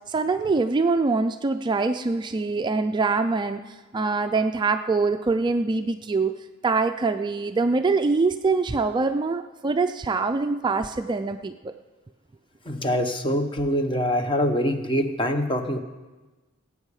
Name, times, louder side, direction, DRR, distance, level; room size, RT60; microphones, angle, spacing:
voice 1, 0.1-6.3 6.6-11.7, right 3 dB, 20° right, 8 dB, 0.3 m, -24 dB
voice 2, 12.7-15.8, equal, 25° left, 7 dB, 0.9 m, -24 dB
18.0 x 8.3 x 4.8 m, 1.2 s
head